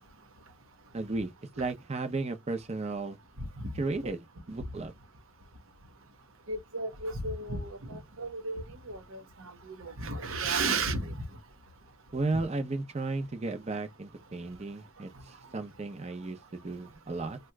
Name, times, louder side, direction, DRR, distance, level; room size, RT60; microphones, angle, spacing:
voice 1, 0.9-3.2 3.7-4.9 12.1-17.4, right 3 dB, 30° right, 0.6 m, -34 dB
voice 2, 3.4-3.7 4.0-4.1 6.5-11.4 15.1-15.2, right 3 dB, 75° right, 0.9 m, -34 dB
2.8 x 2.2 x 3.3 m
head